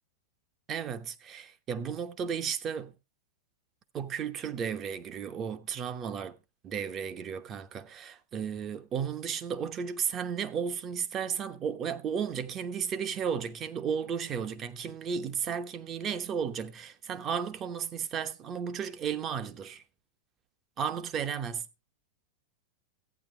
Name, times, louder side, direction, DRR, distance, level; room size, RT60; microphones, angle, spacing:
voice 1, 0.7-2.9 3.9-6.4 6.6-19.8 20.8-21.6, right 7 dB, 30° right, 1.0 m, -34 dB
14.5 x 8.9 x 3.2 m
hypercardioid pair, 125°, 0 cm